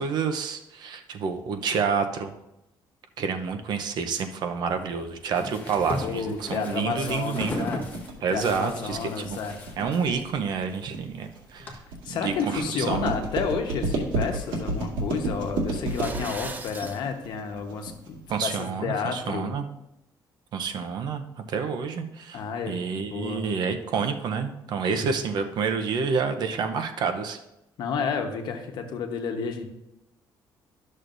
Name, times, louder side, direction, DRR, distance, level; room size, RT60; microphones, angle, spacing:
voice 1, 0.0-2.3 3.2-7.7 8.2-9.4 9.8-11.8 12.1-13.1 18.3-19.7 20.5-21.2 21.5-27.4, right 5 dB, 60° right, 7 dB, 0.7 m, -28 dB
sound 1, 4.7-11.7, left 2 dB, 25° left, 1.3 m, -38 dB
voice 2, 6.0-7.8 8.3-9.7 12.0-19.5 22.3-23.4 27.8-29.6, left 5 dB, 65° left, 4 dB, 1.1 m, -31 dB
sound 2, 6.5-18.4, right 2 dB, 90° right, 1.9 m, -32 dB
sound 3, 15.7-17.0, right 3 dB, 20° right, 0.7 m, -38 dB
12.5 x 6.5 x 2.6 m, 0.90 s
cardioid pair, 150°, 8 cm